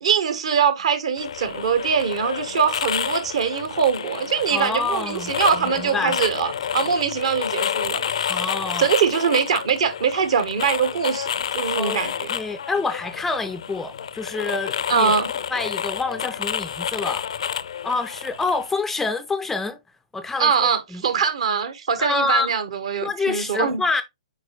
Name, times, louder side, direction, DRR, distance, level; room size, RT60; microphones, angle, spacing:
voice 1, 0.0-8.4 8.8-12.3 14.9-15.3 20.4-23.8, right 7 dB, 55° right, 1.4 m, -23 dB
sound 1, 1.2-18.7, left 8 dB, 60° left, 0.5 m, -29 dB
voice 2, 4.5-6.2 8.3-8.9 11.8-12.0 12.3-15.1 15.5-17.3 17.8-19.8 20.1-21.0 22.0-22.5 23.0-24.0, left 3 dB, 5° left, 0.5 m, -27 dB
8.5 x 4.7 x 2.3 m
figure-of-eight pair, 120°, 4 cm